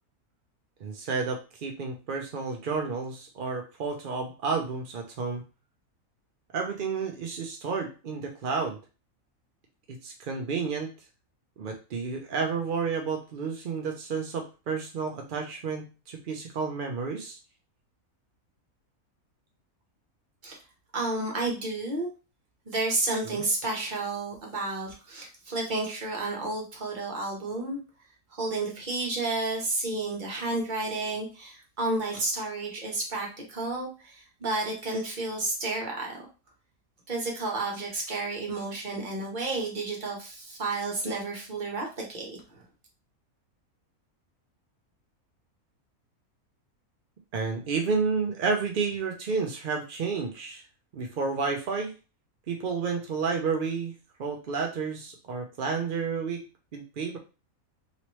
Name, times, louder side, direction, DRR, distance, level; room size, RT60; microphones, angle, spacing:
voice 1, 0.8-5.4 6.5-8.8 9.9-10.9 11.6-17.4 23.3-23.4 47.3-50.6 50.9-51.9 52.5-53.9 54.2-56.4 56.7-57.2, right 5 dB, 70° right, 2 dB, 0.5 m, -31 dB
voice 2, 20.9-22.1 22.7-27.8 28.3-36.2 37.1-42.6, right 2 dB, 40° right, -1 dB, 1.0 m, -31 dB
3.0 x 3.0 x 3.0 m, 0.32 s
omnidirectional pair, 1.6 m